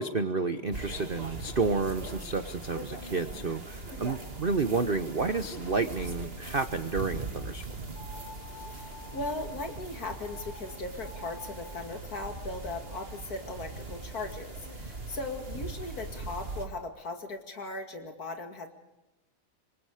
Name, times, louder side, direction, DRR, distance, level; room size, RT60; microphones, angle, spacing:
voice 1, 0.0-7.7, right 4 dB, 50° right, 10 dB, 0.6 m, -30 dB
sound 1, 0.7-16.6, right 2 dB, 25° right, 2.7 m, -41 dB
sound 2, 7.9-9.7 10.2-10.6 10.9-11.8, left 3 dB, 25° left, 7.5 m, -49 dB
voice 2, 8.7-18.7, left 2 dB, 45° left, 5 dB, 2.8 m, -38 dB
27.5 x 24.0 x 5.0 m, 0.98 s
omnidirectional pair, 2.3 m